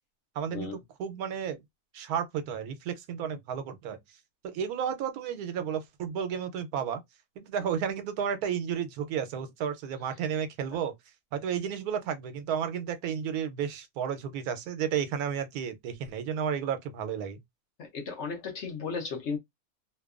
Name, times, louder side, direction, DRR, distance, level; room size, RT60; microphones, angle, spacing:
voice 1, 0.4-1.6 1.9-4.0 4.4-7.0 7.4-10.9 11.3-17.4, right 8 dB, 90° right, 1.1 m, -32 dB
voice 2, 17.8-19.4, left 5 dB, 55° left, 0.9 m, -35 dB
2.8 x 2.2 x 2.4 m
omnidirectional pair, 1.6 m